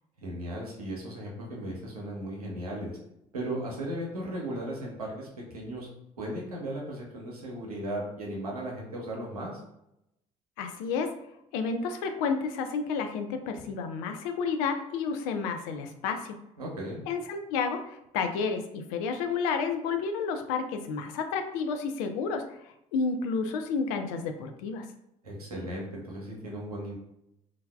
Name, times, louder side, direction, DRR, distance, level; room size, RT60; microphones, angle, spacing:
voice 1, 0.2-3.0 3.3-5.9 6.2-9.6 16.6-17.0 25.2-27.0, right 1 dB, 90° right, -2 dB, 0.7 m, -36 dB
voice 2, 10.6-11.1 11.5-16.4 17.1-22.4 22.9-24.8, left 5 dB, 70° left, 6 dB, 0.4 m, -31 dB
3.2 x 2.2 x 2.3 m, 0.82 s
hypercardioid pair, 55°, 18 cm